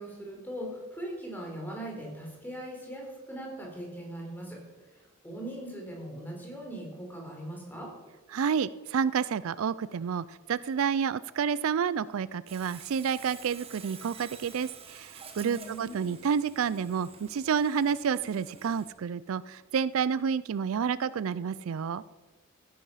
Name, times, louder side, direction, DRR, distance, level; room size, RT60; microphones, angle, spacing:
voice 1, 0.0-4.6 4.9-7.9 15.3-16.0, right 1 dB, 10° left, -1 dB, 3.9 m, -40 dB
voice 2, 8.3-22.0, right 7 dB, 70° right, 18 dB, 0.4 m, -29 dB
Sawing, 12.5-18.9, right 6 dB, 30° right, 1.5 m, -49 dB
15.5 x 10.0 x 5.7 m, 1.2 s
head